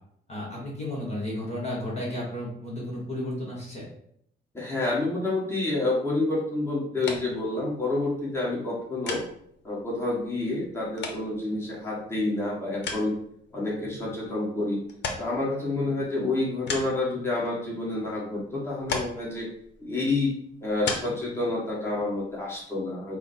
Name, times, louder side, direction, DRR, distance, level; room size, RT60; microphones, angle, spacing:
voice 1, 0.3-3.8, left 1 dB, 35° left, -4 dB, 1.6 m, -33 dB
voice 2, 4.5-9.2 9.6-13.2 13.5-14.8 15.2-19.5 19.8-20.3 20.6-23.2, left 2 dB, 10° left, -6 dB, 1.7 m, -28 dB
sound 1, 6.9-22.6, left 4 dB, 60° left, 0.8 m, -40 dB
4.6 x 2.2 x 4.4 m, 0.70 s
cardioid pair, 90°, 20 cm